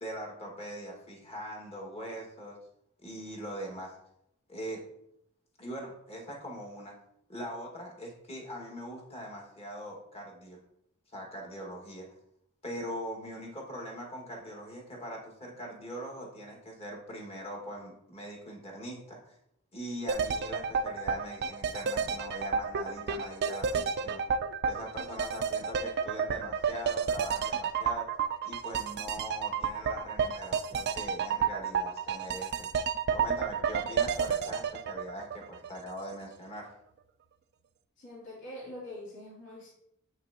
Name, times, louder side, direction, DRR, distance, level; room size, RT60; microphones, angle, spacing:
voice 1, 0.0-2.6 3.0-4.0 4.5-4.8 5.6-7.0 7.3-10.6 11.1-12.1 12.6-19.3 19.7-24.2 24.6-28.1 28.4-32.7 33.1-36.7, equal, 30° left, -1 dB, 1.8 m, -41 dB
sound 1, 20.1-36.0 36.3-36.4, right 6 dB, 50° right, 0.4 m, -31 dB
voice 2, 38.0-39.7, left 1 dB, 60° left, -6 dB, 2.7 m, -44 dB
7.8 x 5.8 x 2.8 m, 0.75 s
head